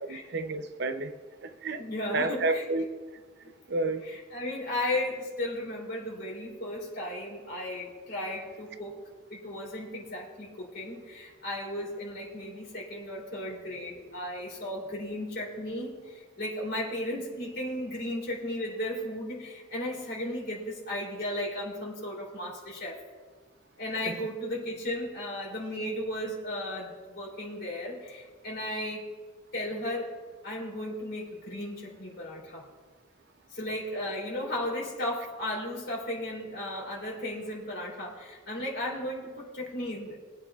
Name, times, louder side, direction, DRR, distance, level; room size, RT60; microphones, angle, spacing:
voice 1, 0.1-1.1 1.6-1.8 2.1-2.9 3.7-4.0, right 2 dB, 60° right, 0.7 m, -30 dB
voice 2, 1.8-2.7 4.0-8.9 9.3-23.0 23.8-29.1 29.5-32.7 33.5-40.2, left 1 dB, 55° left, 3.2 m, -35 dB
22.5 x 8.7 x 2.4 m
head